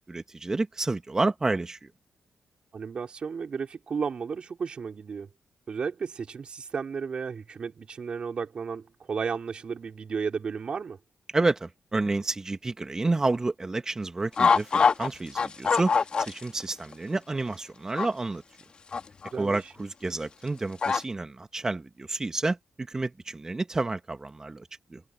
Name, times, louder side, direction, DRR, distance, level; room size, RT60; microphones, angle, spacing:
voice 1, 0.1-1.9 11.3-18.4 19.4-25.0, right 3 dB, 30° right, 2.1 m, -30 dB
voice 2, 2.7-5.3 5.7-11.0 19.3-19.6, right 5 dB, 60° right, 4.5 m, -33 dB
sound 1, 14.4-15.1 15.3-16.6 16.9-17.0 18.0-18.1 18.9-19.3 20.8-21.0, left 5 dB, 55° left, 2.0 m, -23 dB
supercardioid pair, 50°, 2 cm